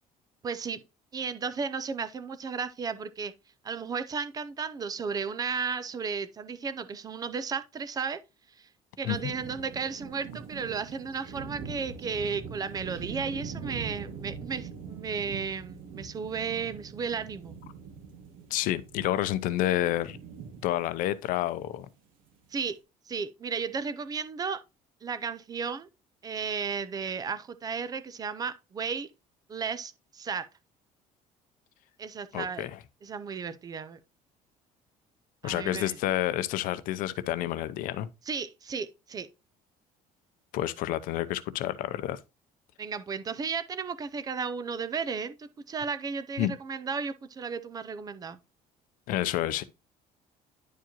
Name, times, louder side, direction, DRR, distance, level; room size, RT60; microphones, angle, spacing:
voice 1, 0.4-0.8 1.1-3.3 3.6-8.2 8.6-8.7 9.0-17.5 22.5-22.8 23.1-24.6 25.0-25.9 26.2-29.1 29.5-30.5 32.0-32.7 33.0-34.0 35.4-36.0 38.3-39.3 42.8-48.4, right 5 dB, 25° right, 0.5 m, -34 dB
sound 1, 9.1-21.7, right 6 dB, 80° right, 2.0 m, -42 dB
voice 2, 18.5-20.2 20.6-21.9 32.3-32.8 35.4-38.1 40.5-42.2 46.4-46.5 49.1-49.6, left 13 dB, 70° left, 0.6 m, -29 dB
10.0 x 4.7 x 3.0 m
cardioid pair, 160°, 15 cm